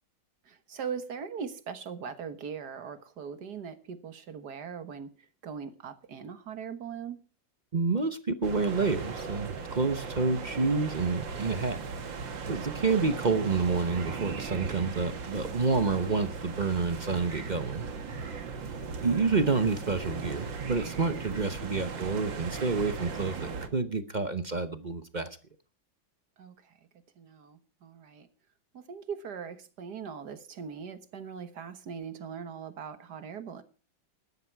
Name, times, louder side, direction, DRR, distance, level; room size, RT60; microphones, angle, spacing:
voice 1, 0.5-7.2 18.5-18.7 26.4-26.8 27.2-28.3 28.7-33.6, right 6 dB, 60° right, 1.9 m, -40 dB
voice 2, 7.7-11.8 12.5-17.9 19.0-25.3, right 4 dB, 40° right, 0.7 m, -28 dB
sound 1, 8.4-23.7, right 5 dB, 75° right, 2.5 m, -38 dB
17.0 x 12.0 x 4.6 m
omnidirectional pair, 2.0 m